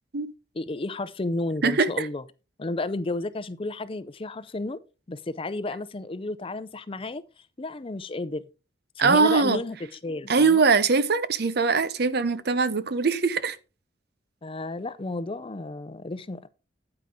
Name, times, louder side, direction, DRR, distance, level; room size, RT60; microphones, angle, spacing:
voice 1, 0.5-2.2 2.6-4.8 5.1-7.2 7.6-8.4 9.0-9.8 10.0-10.6 14.4-16.5, left 2 dB, 30° left, 0.6 m, -32 dB
voice 2, 1.6-2.1 9.0-9.6 10.3-13.6, right 4 dB, 55° right, 0.7 m, -22 dB
9.1 x 9.0 x 3.6 m
head